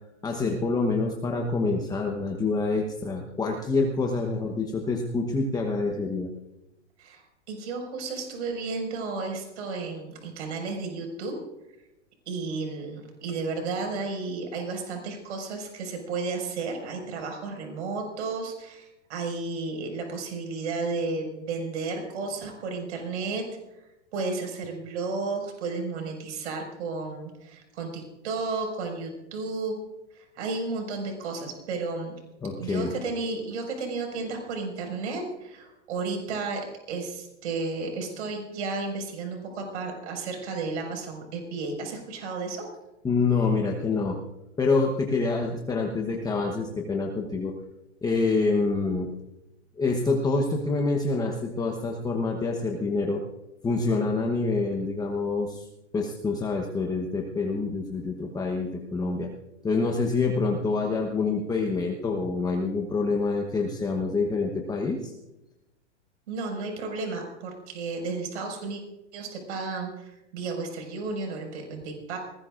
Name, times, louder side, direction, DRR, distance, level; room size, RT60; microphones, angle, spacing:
voice 1, 0.2-6.3 32.4-32.9 43.0-44.2 44.6-47.5 48.0-49.1 49.8-53.2 53.6-55.6 55.9-59.3 59.6-65.1, left 3 dB, 10° left, 1 dB, 1.0 m, -26 dB
voice 2, 7.5-11.3 12.3-23.4 23.8-23.9 24.1-29.7 30.1-32.1 32.6-36.6 36.9-42.6 66.3-68.8 69.1-72.2, right 3 dB, 70° right, 2 dB, 5.6 m, -33 dB
20.5 x 19.5 x 2.5 m, 0.94 s
hypercardioid pair, 140°, 36 cm